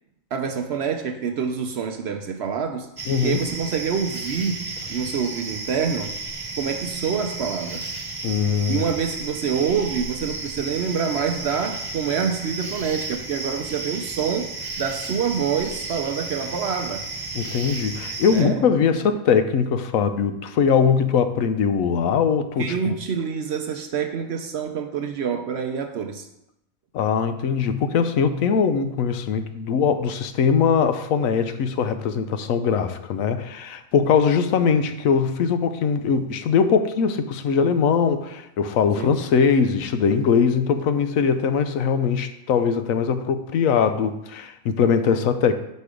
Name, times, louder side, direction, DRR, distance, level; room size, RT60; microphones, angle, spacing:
voice 1, 0.3-2.9 3.2-6.2 6.6-7.9 8.7-17.0 18.3-18.6 22.6-26.3 39.0-39.2, right 6 dB, 60° right, 5 dB, 0.7 m, -26 dB
sound 1, 3.0-18.4, right 3 dB, 25° right, 0.5 m, -33 dB
voice 2, 3.1-3.4 8.2-8.9 17.3-22.9 26.9-45.5, left 6 dB, 80° left, 9 dB, 1.0 m, -21 dB
6.1 x 5.3 x 5.0 m, 0.83 s
omnidirectional pair, 1.4 m